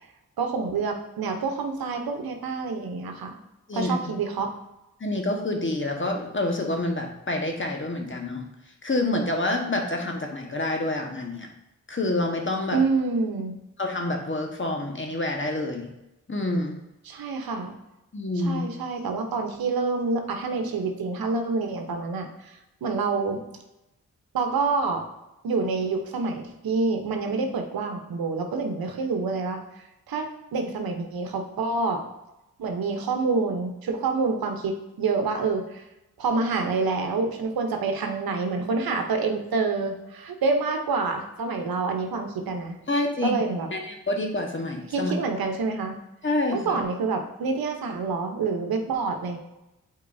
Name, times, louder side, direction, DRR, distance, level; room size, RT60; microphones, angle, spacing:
voice 1, 0.4-3.4 3.7-4.5 12.7-13.5 17.1-17.7 18.4-23.4 24.3-25.0 25.4-29.6 30.1-32.0 32.6-35.8 36.2-42.7 43.2-43.7 44.9-46.0 46.5-49.4, right 4 dB, 85° right, 4 dB, 0.9 m, -27 dB
voice 2, 5.0-8.4 8.8-11.5 11.9-12.8 13.8-15.9 16.3-16.8 18.1-18.6 42.9-43.4 43.7-45.1 46.2-46.8, left 2 dB, 35° left, 2 dB, 1.4 m, -27 dB
8.4 x 4.4 x 2.7 m, 0.93 s
cardioid pair, 45°, 35 cm